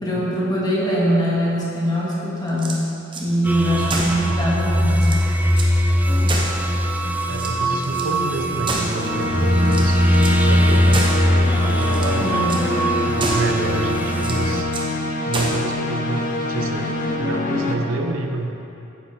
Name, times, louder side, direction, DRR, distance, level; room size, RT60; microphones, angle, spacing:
voice 1, 0.0-2.8 3.2-5.2 12.2-12.5, equal, 20° left, -7 dB, 1.8 m, -22 dB
sound 1, 2.5-3.3 3.9-4.3 4.7-4.8 5.0-5.8 6.3-7.0 7.3-8.1 8.6-9.2 9.7-10.4 10.9-11.3 11.8-12.2 12.5-12.7 13.2-13.6 14.2-14.9 15.3-15.7, right 2 dB, 25° right, 0.8 m, -29 dB
sound 2, 3.4-14.6, equal, 10° right, 0.3 m, -20 dB
voice 2, 3.8-4.2 7.3-10.1 10.4-11.1 11.5-12.3 13.0-14.7 15.2-16.9 17.2-18.6, right 2 dB, 80° right, 4 dB, 0.7 m, -28 dB
sound 3, 6.1-6.3 8.9-17.8, left 2 dB, 40° left, 0.7 m, -25 dB
9.2 x 6.9 x 3.6 m, 2.8 s
head